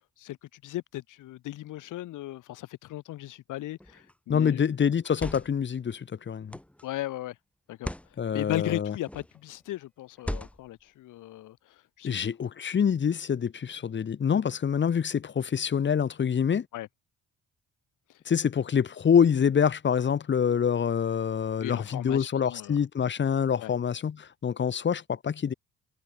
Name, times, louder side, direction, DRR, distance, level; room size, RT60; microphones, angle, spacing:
voice 1, 0.2-4.6 6.8-7.4 7.7-7.9 8.3-12.5 16.7-16.9 21.6-22.8 23.6-23.7, left 15 dB, 90° left, 6.6 m, -37 dB
sound 1, 3.8-4.1 4.9-5.7 6.5-6.8 7.7-8.1 9.0-9.4 10.2-10.8, left 1 dB, 5° left, 3.5 m, -38 dB
voice 2, 4.3-6.6 8.2-8.9 12.0-16.7 18.3-25.5, left 7 dB, 40° left, 1.1 m, -26 dB
cardioid pair, 90°, 30 cm